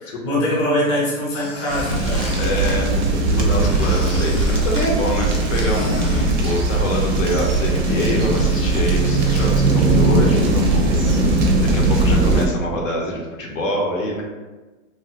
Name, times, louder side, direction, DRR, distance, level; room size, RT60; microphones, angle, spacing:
voice 1, 0.0-2.3, left 1 dB, 25° left, -6 dB, 0.5 m, -22 dB
Squeak, 1.3-2.8 3.6-7.3 7.5-9.5, left 2 dB, 50° left, 0.8 m, -37 dB
sound 1, 1.7-12.5, right 2 dB, 40° right, 0.4 m, -19 dB
voice 2, 2.4-6.0 6.4-10.9 11.6-14.2, left 1 dB, 80° left, -1 dB, 0.9 m, -25 dB
3.0 x 2.4 x 2.8 m, 1.2 s
hypercardioid pair, 165°, 39 cm